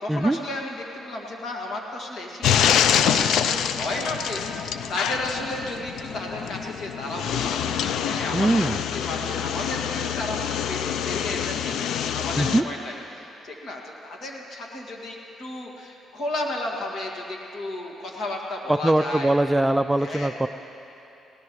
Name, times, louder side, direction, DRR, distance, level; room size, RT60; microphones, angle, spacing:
voice 1, 0.0-3.5 3.8-10.4 10.7-19.4 20.0-20.3, left 1 dB, 60° left, 0 dB, 2.1 m, -33 dB
sound 1, 2.4-12.6, left 9 dB, 80° left, 0.4 m, -26 dB
voice 2, 8.3-8.8 12.4-12.6 18.7-20.5, right 1 dB, 10° right, 10 dB, 0.3 m, -21 dB
19.0 x 18.5 x 3.2 m, 3.0 s
cardioid pair, 90°, 0 cm